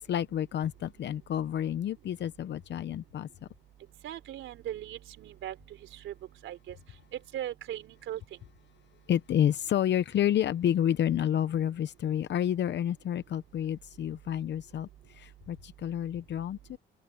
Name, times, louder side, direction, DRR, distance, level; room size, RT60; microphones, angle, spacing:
voice 1, 0.0-3.3 9.1-14.9 15.2-16.8, left 10 dB, 65° left, 0.8 m, -29 dB
voice 2, 4.0-5.5 5.9-6.1 6.4-6.7 7.3-8.2, right 12 dB, 80° right, 4.1 m, -38 dB
open air
cardioid pair, 90°, 20 cm